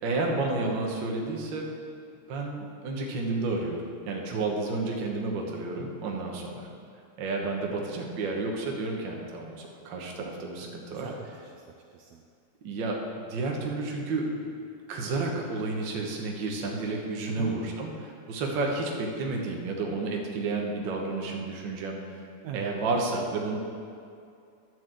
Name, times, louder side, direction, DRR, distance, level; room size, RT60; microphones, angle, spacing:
voice 1, 0.0-1.6 2.3-6.7 7.2-11.1 12.6-14.4 14.9-22.0 22.5-23.6, right 3 dB, 60° right, 0 dB, 1.3 m, -31 dB
voice 2, 4.3-4.7 10.6-12.2 17.3-17.5 22.4-22.7, right 8 dB, 75° right, 1 dB, 1.6 m, -42 dB
10.5 x 4.7 x 7.6 m, 2.4 s
omnidirectional pair, 3.4 m